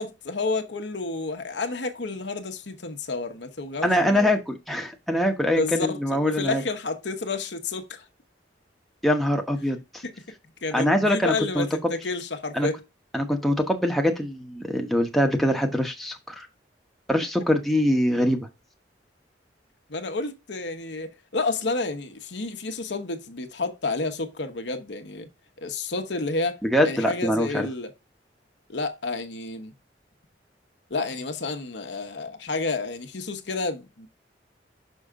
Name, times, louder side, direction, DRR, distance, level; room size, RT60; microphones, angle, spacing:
voice 1, 0.0-4.4 5.6-8.0 10.0-12.8 19.9-25.3 25.6-27.9 28.7-29.7 30.9-34.1, left 3 dB, 70° left, 1.1 m, -30 dB
voice 2, 3.8-6.6 9.0-10.0 10.7-11.9 12.5-12.7 13.1-16.5 17.1-18.4 26.6-27.7, left 1 dB, ahead, 1.0 m, -23 dB
6.3 x 5.6 x 3.7 m
head